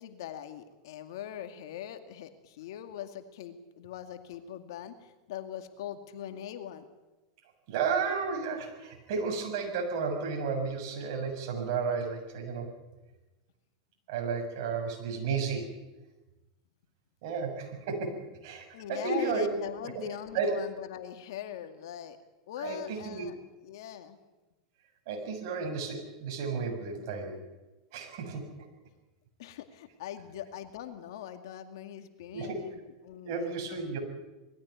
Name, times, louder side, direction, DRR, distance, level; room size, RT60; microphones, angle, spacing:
voice 1, 0.0-6.8 18.7-22.2 22.5-24.2 29.4-34.0, left 10 dB, 75° left, 8 dB, 2.2 m, -42 dB
voice 2, 7.7-12.7 14.1-15.8 17.2-19.5 20.0-20.1 20.3-20.6 22.6-23.3 25.1-27.4 27.9-28.4 32.3-32.7 33.2-34.0, right 5 dB, 65° right, 3 dB, 7.0 m, -33 dB
20.5 x 15.5 x 9.5 m, 1.1 s
hypercardioid pair, 115°, 2 cm